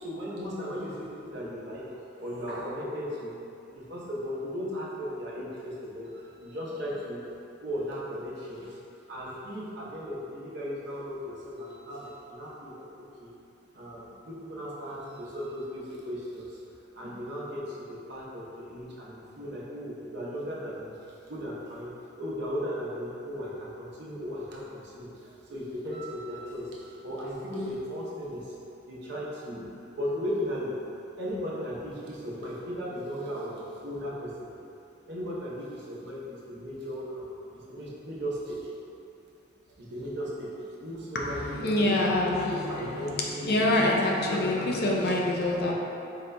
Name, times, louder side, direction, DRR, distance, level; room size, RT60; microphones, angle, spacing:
voice 1, 0.0-1.9 2.2-3.4 3.7-7.2 7.6-8.8 9.1-13.3 13.7-16.6 16.9-20.9 21.3-21.9 22.2-28.5 28.9-30.8 31.2-34.5 35.0-38.6 39.9-43.6 44.2-45.2 45.6-45.7, equal, 60° right, -6 dB, 0.8 m, -36 dB
voice 2, 41.1-45.7, left 1 dB, 55° left, -2 dB, 0.5 m, -26 dB
4.2 x 3.9 x 2.2 m, 2.8 s
head